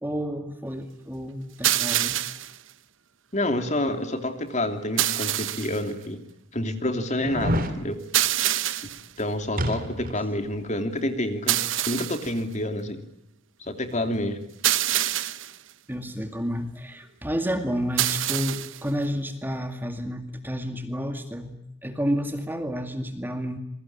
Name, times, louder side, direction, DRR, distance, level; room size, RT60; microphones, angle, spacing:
voice 1, 0.0-2.2 15.9-23.6, equal, 10° right, 6 dB, 2.3 m, -30 dB
sound 1, 1.6-2.6 5.0-5.8 8.1-9.1 11.5-12.3 14.6-15.6 18.0-18.8, right 13 dB, 65° right, 1.0 m, -25 dB
voice 2, 3.3-6.2 6.5-8.0 9.2-13.0 13.6-14.4, left 1 dB, 35° left, 7 dB, 2.9 m, -28 dB
sound 2, 6.0-6.1 7.2-7.8 9.6-10.2 10.6-10.7, equal, 45° right, 3.1 m, -27 dB
27.0 x 22.5 x 8.7 m, 0.80 s
head